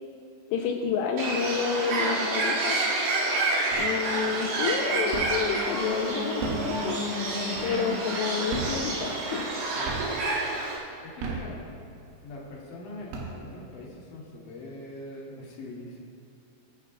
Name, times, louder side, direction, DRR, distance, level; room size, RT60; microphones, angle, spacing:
voice 1, 0.5-2.8 3.7-7.0 7.6-9.4, left 6 dB, 85° left, 2 dB, 2.5 m, -29 dB
Bird, 1.2-10.8, right 2 dB, 65° right, 3.8 m, -29 dB
sound 1, 3.7-4.2 4.6-5.6 6.2-8.0 8.4-9.6 9.9-10.4 11.0-12.1 12.6-12.7 12.9-13.8, right 3 dB, 85° right, 4.2 m, -35 dB
sound 2, 4.6-9.7, left 2 dB, 45° right, 1.3 m, -37 dB
voice 2, 9.7-10.1 11.0-11.6 12.2-16.0, left 2 dB, 50° left, -4 dB, 2.9 m, -42 dB
24.5 x 9.9 x 2.4 m, 2.5 s
omnidirectional pair, 5.7 m